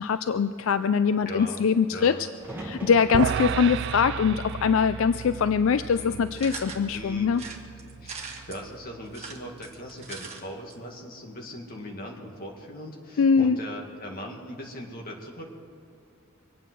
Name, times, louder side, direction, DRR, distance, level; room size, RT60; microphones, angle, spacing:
voice 1, 0.0-2.3 2.6-7.4 13.2-13.6, left 6 dB, 75° left, 12 dB, 0.4 m, -23 dB
voice 2, 1.2-1.6 1.9-2.2 5.9-6.2 6.9-7.3 8.0-8.2 8.5-15.5, equal, 45° left, 0 dB, 2.0 m, -39 dB
sound 1, 2.4-6.4 6.8-7.6 9.4-9.9, right 1 dB, 10° right, 1.9 m, -44 dB
sound 2, 3.1-9.5, right 7 dB, 55° right, 0.3 m, -34 dB
sound 3, 6.4-6.8 7.3-8.6 9.1-10.4 10.7-10.8 11.0-11.1, right 5 dB, 30° right, 1.7 m, -40 dB
24.0 x 9.0 x 6.2 m, 2.6 s
head